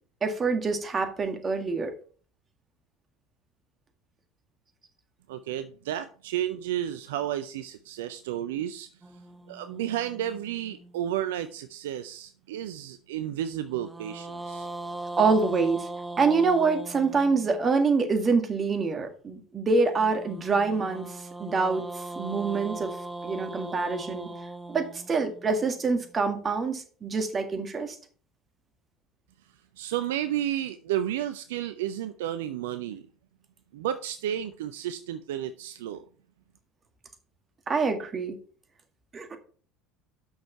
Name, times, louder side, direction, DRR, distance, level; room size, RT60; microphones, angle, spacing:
voice 1, 0.2-1.9 15.2-15.9 16.2-23.0 23.2-24.3 24.7-28.0 37.7-38.4 39.1-39.4, right 4 dB, 30° right, 6 dB, 1.9 m, -26 dB
voice 2, 5.3-8.9 9.5-14.7 29.8-33.1 33.7-36.0, right 11 dB, 70° right, 11 dB, 0.5 m, -32 dB
sound 1, 9.0-11.4 13.6-17.8 19.9-26.1, right 2 dB, 10° right, 0.9 m, -40 dB
8.0 x 6.4 x 4.5 m, 0.42 s
figure-of-eight pair, 70°, 0 cm